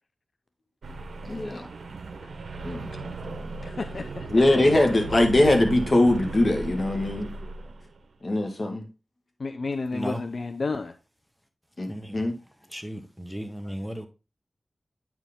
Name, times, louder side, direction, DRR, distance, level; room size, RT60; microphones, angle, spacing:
sound 1, 0.8-8.0, right 3 dB, 90° right, 0.8 m, -36 dB
voice 1, 1.3-1.7 2.6-2.9 4.3-7.3 8.2-8.9 11.8-11.9 12.1-12.3, left 1 dB, 50° left, 1.8 m, -21 dB
voice 2, 3.6-4.3 9.4-11.0, left 3 dB, 70° left, 0.6 m, -31 dB
voice 3, 9.9-10.2 11.9-12.3 12.7-14.1, equal, ahead, 1.2 m, -35 dB
8.8 x 4.7 x 3.5 m
wide cardioid pair, 60°, 0 cm